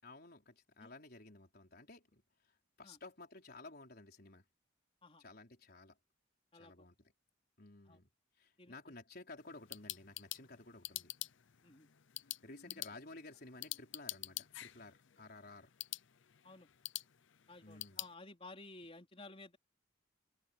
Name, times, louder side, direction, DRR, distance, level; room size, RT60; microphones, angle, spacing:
voice 1, 0.0-2.2 2.8-4.4 5.2-6.0 6.5-7.1 7.6-8.1 8.4-11.1 12.4-15.7 17.6-18.0, left 2 dB, 50° left, 4.6 m, -54 dB
voice 2, 6.5-6.9 7.8-8.0 8.6-8.8 11.6-11.9 12.6-12.8 16.4-16.7 17.5-19.6, left 2 dB, 30° left, 4.3 m, -54 dB
sound 1, 9.4-18.1, left 16 dB, 70° left, 0.6 m, -47 dB
head